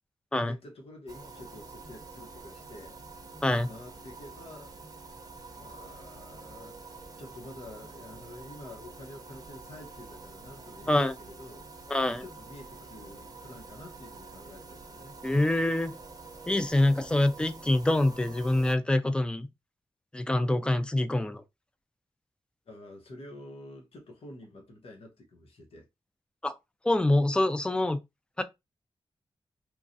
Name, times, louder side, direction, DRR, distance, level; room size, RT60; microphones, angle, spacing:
voice 1, 0.4-3.0 3.6-4.7 5.0-5.2 5.5-6.8 7.2-11.7 12.2-15.1 22.7-25.9, left 1 dB, 80° left, 0.9 m, -48 dB
sound 1, 1.1-18.8, right 3 dB, 40° right, 0.6 m, -47 dB
voice 2, 11.9-12.2 15.2-15.9 16.5-19.5 20.1-21.4 26.4-26.5 26.8-28.0 28.4-28.5, left 1 dB, 10° left, 0.3 m, -25 dB
3.1 x 2.3 x 2.6 m
wide cardioid pair, 120°, 10 cm